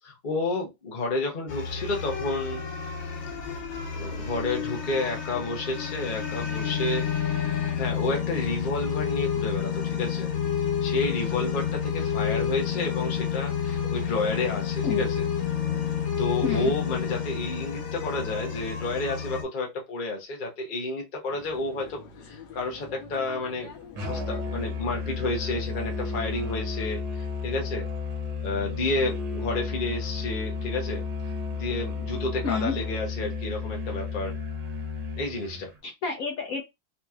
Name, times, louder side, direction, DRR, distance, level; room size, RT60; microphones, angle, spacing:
voice 1, 0.0-2.7 3.9-7.1 7.3-7.5 7.8-10.3 10.8-15.1 16.2-23.7 24.0-27.9 28.4-31.0 31.5-34.4 35.2-35.7, left 2 dB, 35° left, 0.9 m, -31 dB
sound 1, 1.5-19.4, left 8 dB, 90° left, 1.8 m, -29 dB
sound 2, 21.3-26.3, left 5 dB, 70° left, 1.6 m, -47 dB
Musical instrument, 24.0-35.7, left 4 dB, 75° right, 1.8 m, -32 dB
voice 2, 35.8-36.6, left 5 dB, 55° left, 1.1 m, -29 dB
4.1 x 2.9 x 2.4 m
omnidirectional pair, 2.0 m